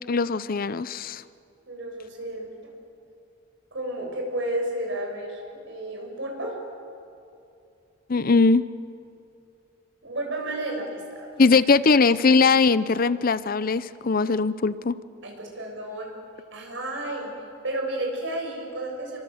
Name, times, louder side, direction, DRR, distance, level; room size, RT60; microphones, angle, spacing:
voice 1, 0.1-1.2 8.1-8.6 11.4-15.0, left 4 dB, 45° left, 16 dB, 0.6 m, -20 dB
voice 2, 1.7-2.7 3.7-6.5 10.0-11.3 15.2-16.1 16.5-17.3 17.6-19.2, right 1 dB, 65° right, 1 dB, 7.1 m, -32 dB
27.5 x 24.5 x 8.0 m, 2.5 s
head